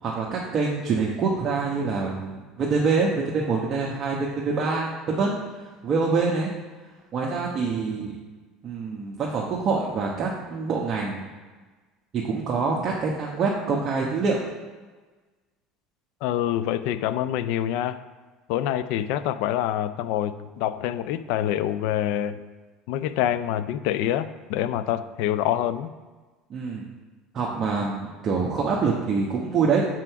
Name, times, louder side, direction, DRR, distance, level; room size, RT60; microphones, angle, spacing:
voice 1, 0.0-5.4 5.8-6.5 7.1-8.1 8.6-11.3 12.1-14.4 26.5-26.8 27.3-29.9, right 4 dB, 40° right, -3 dB, 1.0 m, -25 dB
voice 2, 16.2-18.0 18.5-22.4 22.9-25.9, left 11 dB, 75° left, 13 dB, 0.4 m, -26 dB
6.1 x 4.5 x 5.8 m, 1.3 s
supercardioid pair, 115°, 0 cm